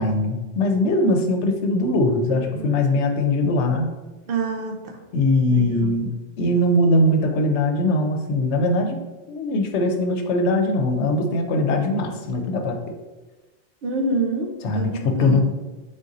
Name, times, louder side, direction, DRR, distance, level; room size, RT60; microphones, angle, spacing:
voice 1, 0.0-3.9 5.1-9.0 9.3-12.9 14.6-15.4, left 1 dB, 80° left, 4 dB, 0.9 m, -21 dB
voice 2, 2.3-2.7 4.3-5.0 5.5-6.0 13.8-15.4, right 3 dB, 60° right, 3 dB, 0.8 m, -27 dB
3.8 x 2.6 x 3.8 m, 1.2 s
omnidirectional pair, 1.2 m